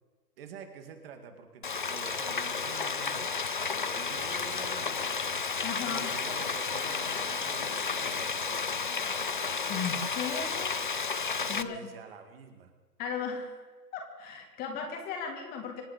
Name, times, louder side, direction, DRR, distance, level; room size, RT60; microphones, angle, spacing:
voice 1, 0.4-3.3 3.7-5.2 5.9-8.3 11.4-12.7, right 6 dB, 35° right, 6 dB, 2.1 m, -47 dB
Frying (food), 1.6-11.6, left 5 dB, 35° left, 0.4 m, -32 dB
sound 1, 4.0-9.1, right 3 dB, 10° right, 2.2 m, -58 dB
voice 2, 5.6-6.1 9.7-10.7 11.2-11.8 13.0-13.6 13.9-15.8, left 6 dB, 20° left, 3 dB, 2.1 m, -36 dB
25.5 x 9.7 x 5.2 m, 1.4 s
hypercardioid pair, 140°, 48 cm